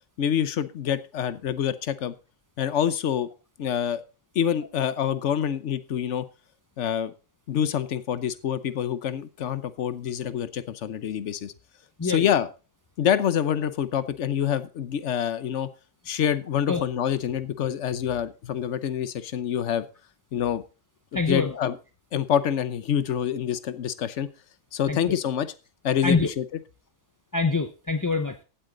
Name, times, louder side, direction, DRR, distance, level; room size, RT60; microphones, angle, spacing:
voice 1, 0.2-2.1 2.6-3.3 3.6-4.0 4.3-6.2 6.8-7.1 7.5-11.5 12.0-12.5 13.0-15.7 16.1-19.8 20.3-20.6 21.1-21.8 22.1-24.3 24.7-25.5 25.8-26.4, left 9 dB, 65° left, 14 dB, 1.1 m, -26 dB
voice 2, 21.1-21.6 24.9-25.1 26.0-26.3 27.3-28.4, left 4 dB, 20° left, 9 dB, 0.5 m, -25 dB
15.5 x 8.6 x 3.9 m, 0.34 s
omnidirectional pair, 1.4 m